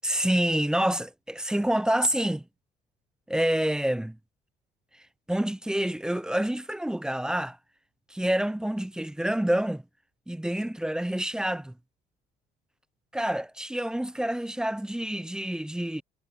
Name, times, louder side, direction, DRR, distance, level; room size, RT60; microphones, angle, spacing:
voice 1, 0.0-2.4 3.3-4.2 5.3-7.6 8.1-9.8 10.3-11.7 13.1-16.0, right 1 dB, 5° right, 0.7 m, -27 dB
cardioid pair, 110°, 17 cm